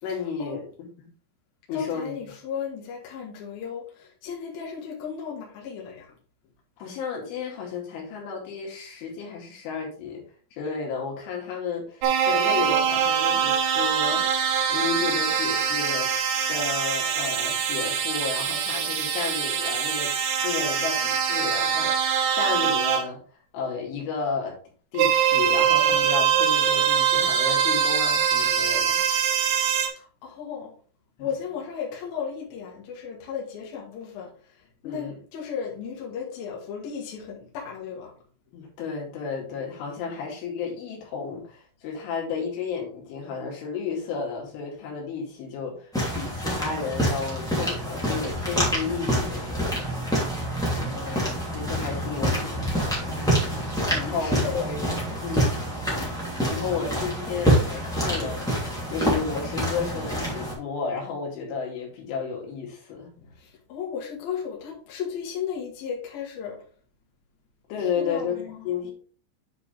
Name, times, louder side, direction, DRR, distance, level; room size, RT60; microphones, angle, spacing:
voice 1, 0.0-0.6 1.0-1.1 1.7-2.2 6.8-10.2 10.5-16.1 16.5-20.1 20.4-23.2 23.5-24.6 24.9-29.0 31.2-31.3 34.8-35.2 38.5-49.8 50.8-51.0 51.5-53.0 53.9-54.9 55.2-55.6 56.5-63.1 67.7-68.4 68.6-68.9, left 5 dB, 70° left, -1 dB, 4.6 m, -32 dB
voice 2, 1.7-6.1 29.8-30.7 31.2-38.1 50.7-51.4 53.8-54.7 63.2-66.6 67.9-68.7, left 7 dB, 55° left, -3 dB, 3.2 m, -35 dB
sound 1, 12.0-23.0 25.0-29.9, right 8 dB, 75° right, 2.5 m, -23 dB
sound 2, 45.9-60.5, right 1 dB, ahead, 1.5 m, -27 dB
9.8 x 4.9 x 3.4 m, 0.42 s
omnidirectional pair, 5.8 m